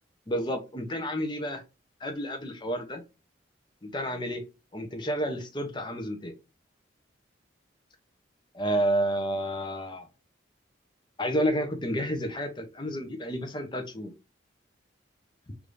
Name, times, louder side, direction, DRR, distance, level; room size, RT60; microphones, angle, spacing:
voice 1, 0.3-1.6 2.0-3.0 3.8-4.4 4.7-6.3 8.5-10.1 11.2-14.1, equal, 25° left, 6 dB, 0.6 m, -30 dB
3.5 x 2.5 x 3.1 m, 0.27 s
head